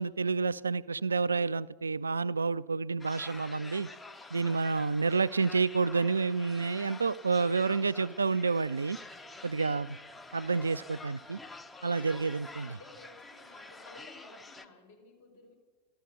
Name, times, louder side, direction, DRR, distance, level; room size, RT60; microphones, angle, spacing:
voice 1, 0.0-3.9 4.3-9.0 9.4-10.0 10.3-11.4 11.8-12.8, right 4 dB, 75° right, 19 dB, 0.3 m, -29 dB
sound 1, 3.0-14.7, left 3 dB, 10° left, 0.7 m, -48 dB
voice 2, 12.4-15.5, left 2 dB, 60° left, -1 dB, 4.3 m, -55 dB
13.5 x 12.5 x 6.2 m, 1.4 s
figure-of-eight pair, 90°, 0 cm